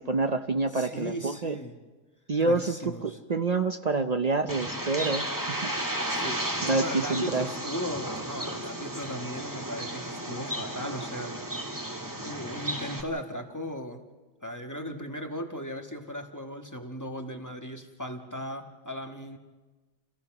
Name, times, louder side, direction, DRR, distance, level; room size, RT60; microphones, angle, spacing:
voice 1, 0.0-1.6 2.3-5.7 6.6-7.5, right 3 dB, 80° right, 7 dB, 0.3 m, -27 dB
voice 2, 0.7-1.7 2.4-3.2 6.1-11.7 12.2-14.0 14.4-19.4, equal, 10° left, 4 dB, 1.4 m, -37 dB
Bird, 4.5-13.0, right 1 dB, 10° right, 1.6 m, -34 dB
28.5 x 16.0 x 6.0 m, 1.3 s
omnidirectional pair, 1.8 m